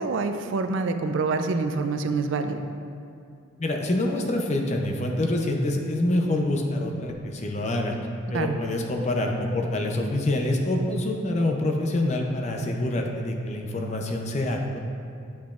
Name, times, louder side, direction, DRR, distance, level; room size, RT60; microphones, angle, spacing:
voice 1, 0.0-2.6 8.3-8.6, right 4 dB, 65° right, 7 dB, 0.4 m, -26 dB
voice 2, 3.6-7.9 8.3-14.8, left 1 dB, 35° left, 2 dB, 0.5 m, -26 dB
8.6 x 5.8 x 2.4 m, 2.5 s
head